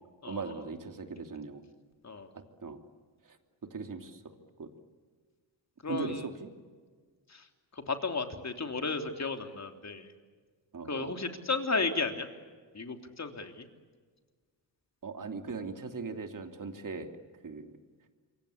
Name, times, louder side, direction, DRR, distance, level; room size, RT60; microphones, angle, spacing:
voice 1, 0.3-1.7 2.3-2.8 3.2-3.4 3.7-4.2 4.6-4.7 5.9-6.5 10.7-11.2 15.0-17.2 17.4-17.7, right 4 dB, 45° right, 6 dB, 3.1 m, -39 dB
voice 2, 5.8-6.2 7.3-7.5 7.7-10.1 10.9-12.3 12.7-13.7, left 4 dB, 35° left, 6 dB, 3.3 m, -34 dB
27.0 x 24.0 x 8.7 m, 1.5 s
cardioid pair, 90°, 44 cm